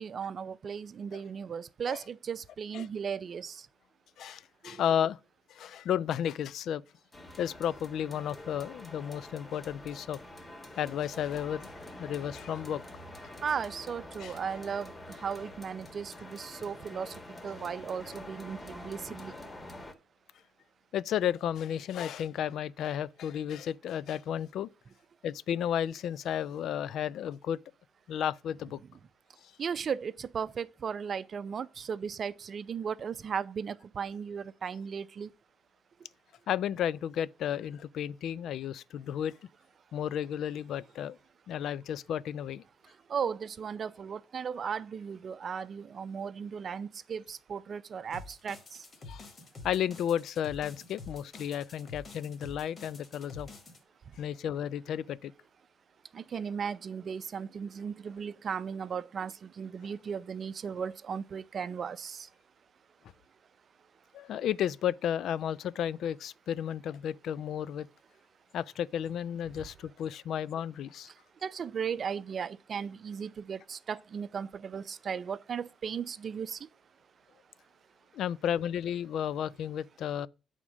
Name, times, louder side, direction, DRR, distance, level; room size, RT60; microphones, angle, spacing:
voice 1, 0.0-3.7 4.6-4.8 13.4-19.3 29.6-35.3 43.1-48.9 56.1-62.3 71.4-76.7, right 7 dB, 50° right, 0.5 m, -36 dB
voice 2, 4.2-5.2 5.5-6.8 7.4-10.2 10.7-11.7 12.0-12.8 14.2-14.4 20.9-24.7 25.2-27.6 28.1-28.8 29.4-29.5 36.5-39.3 39.9-41.2 41.5-42.6 49.1-49.3 49.6-53.5 54.2-55.3 64.1-67.9 68.5-71.1 78.1-80.3, left 9 dB, 75° left, 0.3 m, -33 dB
sound 1, 7.1-19.9, left 1 dB, 25° left, 1.3 m, -46 dB
sound 2, 48.1-53.8, left 3 dB, 40° left, 1.6 m, -48 dB
8.2 x 3.6 x 6.1 m
cardioid pair, 90°, 0 cm